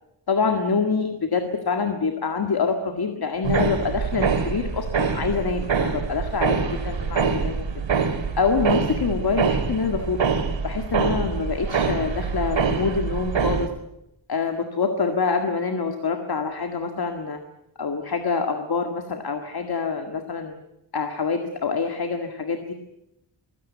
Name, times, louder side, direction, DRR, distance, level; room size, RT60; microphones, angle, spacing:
voice 1, 0.3-7.7 8.4-10.2 10.6-13.7 14.3-17.4 17.8-20.5 20.9-22.7, left 5 dB, 55° left, 6 dB, 1.9 m, -26 dB
sound 1, 3.4-13.7, right 5 dB, 75° right, 2.4 m, -25 dB
24.0 x 16.5 x 9.5 m, 0.85 s
wide cardioid pair, 155°, 45 cm